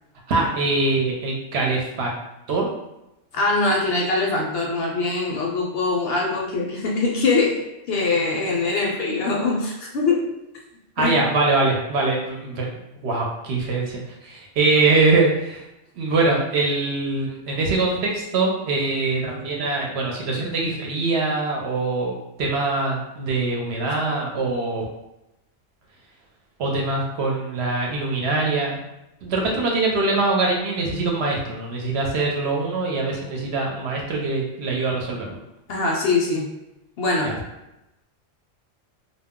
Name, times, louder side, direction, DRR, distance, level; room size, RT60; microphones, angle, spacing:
voice 1, 0.3-2.1 2.5-2.7 11.0-12.7 13.0-15.6 15.9-24.9 26.6-28.8 29.2-35.4 37.2-37.3, right 3 dB, 65° right, -1 dB, 0.8 m, -23 dB
voice 2, 3.3-10.3 11.0-11.2 35.7-36.5 37.0-37.3, left 3 dB, 65° left, -1 dB, 0.7 m, -23 dB
2.2 x 2.0 x 3.5 m, 0.91 s
omnidirectional pair, 1.2 m